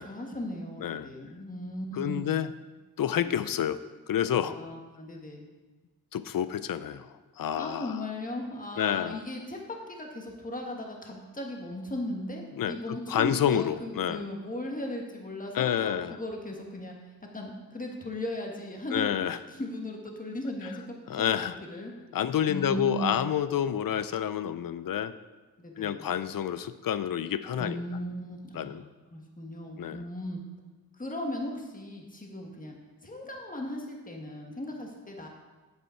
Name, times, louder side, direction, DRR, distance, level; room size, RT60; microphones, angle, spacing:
voice 1, 0.0-2.2 3.1-3.3 4.5-5.4 7.6-17.0 17.3-21.2 21.7-21.9 22.5-23.2 25.6-26.1 27.6-30.4 31.0-32.8 33.0-35.3, left 1 dB, 20° left, 1 dB, 1.5 m, -37 dB
voice 2, 1.9-2.5 3.0-3.8 4.1-4.6 6.1-8.0 8.8-9.2 12.6-14.2 15.5-16.2 18.9-19.4 21.1-21.6 22.1-25.1 25.8-27.8 28.6-28.8 29.8-30.0, left 9 dB, 60° left, 14 dB, 0.5 m, -29 dB
8.1 x 8.0 x 4.4 m, 1.3 s
wide cardioid pair, 80°, 38 cm